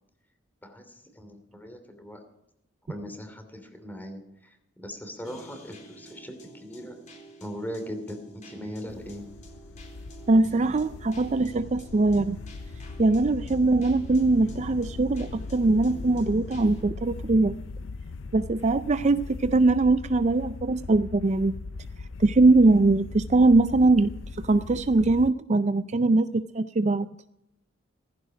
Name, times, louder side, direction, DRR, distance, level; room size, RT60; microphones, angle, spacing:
voice 1, 0.6-2.2 2.9-7.0 7.4-9.3, equal, 10° left, 6 dB, 2.9 m, -39 dB
sound 1, 5.2-16.8, right 1 dB, 40° left, 3.7 m, -49 dB
sound 2, 8.9-25.3, left 3 dB, 80° left, 0.5 m, -39 dB
voice 2, 10.3-12.4 13.0-17.6 18.3-21.5 22.2-24.1 24.4-26.3 26.5-27.1, right 2 dB, 35° right, 12 dB, 0.4 m, -21 dB
16.0 x 15.0 x 5.0 m, 0.83 s
head